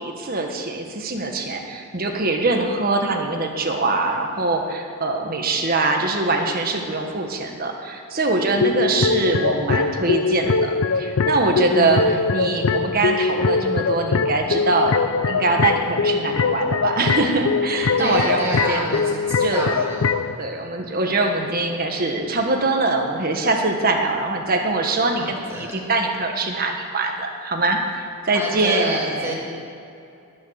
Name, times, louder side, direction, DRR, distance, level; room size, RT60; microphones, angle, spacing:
voice 1, 0.0-15.0 15.3-19.0 19.4-19.8 20.4-27.8 28.2-29.3, right 2 dB, 45° right, 2 dB, 1.5 m, -23 dB
sound 1, 8.6-20.3, left 4 dB, 65° left, 0.5 m, -22 dB
voice 2, 11.7-12.1 18.0-20.2 25.1-25.8 28.3-29.4, equal, 10° right, -4 dB, 3.0 m, -28 dB
19.0 x 6.7 x 7.6 m, 2.7 s
head